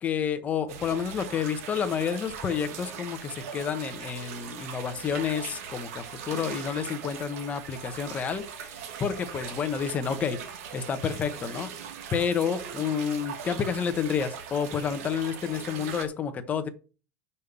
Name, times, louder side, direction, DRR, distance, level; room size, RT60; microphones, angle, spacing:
voice 1, 0.0-10.4 10.7-11.7 12.1-16.7, left 7 dB, 15° left, 0.9 m, -30 dB
sound 1, 0.7-16.1, right 7 dB, 60° right, 1.6 m, -40 dB
6.4 x 5.6 x 6.7 m
supercardioid pair, 170°, 9 cm